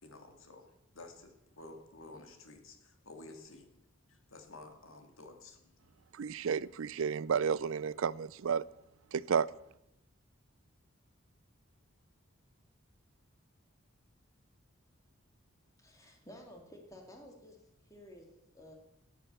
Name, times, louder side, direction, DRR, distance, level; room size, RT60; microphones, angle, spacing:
voice 1, 0.0-3.7 4.1-5.9, left 2 dB, 75° left, 2.3 m, -52 dB
voice 2, 6.2-8.7 9.1-9.5, right 6 dB, 75° right, 0.4 m, -32 dB
voice 3, 15.8-18.8, left 1 dB, 15° left, 2.5 m, -54 dB
17.0 x 7.9 x 6.7 m
head